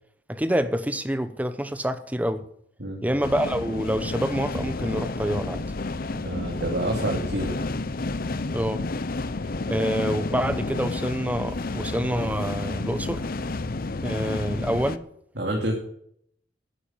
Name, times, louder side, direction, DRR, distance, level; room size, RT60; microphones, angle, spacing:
voice 1, 0.3-2.4 3.0-5.7 8.5-8.8 9.7-13.3 14.0-15.0, equal, 10° right, 0.9 m, -27 dB
sound 1, 3.2-15.0, left 3 dB, 55° left, 0.7 m, -30 dB
voice 2, 6.2-7.5 15.4-15.7, right 1 dB, 70° right, 3.0 m, -28 dB
10.5 x 10.0 x 8.9 m
head